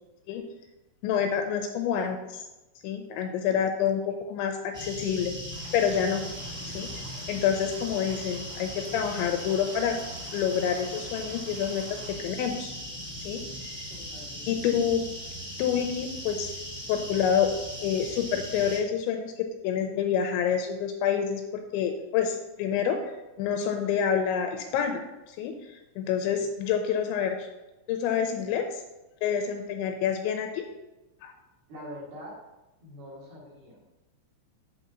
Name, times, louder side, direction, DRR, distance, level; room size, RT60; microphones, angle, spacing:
voice 1, 1.0-2.5 2.8-5.3 5.7-6.2 6.6-7.0 7.3-10.0 10.3-11.8 12.2-12.7 13.2-13.9 14.5-15.1 15.6-17.5 17.8-23.0 23.4-27.5 27.9-28.8 29.2-30.6 31.2-31.3, left 8 dB, 85° left, 5 dB, 2.8 m, -28 dB
sound 1, 4.7-18.8, equal, 5° left, 1.5 m, -39 dB
sound 2, 5.5-12.1, right 3 dB, 75° right, 4.1 m, -50 dB
voice 2, 13.9-14.6 31.7-32.4 32.8-33.9, equal, 55° right, -5 dB, 3.9 m, -44 dB
8.5 x 4.4 x 6.8 m, 1.0 s
omnidirectional pair, 5.6 m